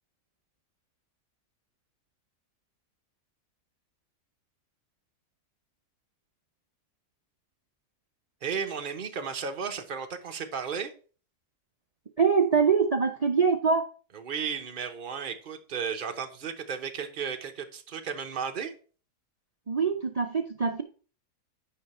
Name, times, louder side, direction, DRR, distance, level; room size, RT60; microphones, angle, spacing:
voice 1, 8.4-10.9 14.1-18.7, right 6 dB, 35° right, 5 dB, 1.0 m, -34 dB
voice 2, 12.2-13.8 19.7-20.8, right 5 dB, 60° right, 6 dB, 0.4 m, -24 dB
8.8 x 5.7 x 4.3 m, 0.39 s
omnidirectional pair, 1.7 m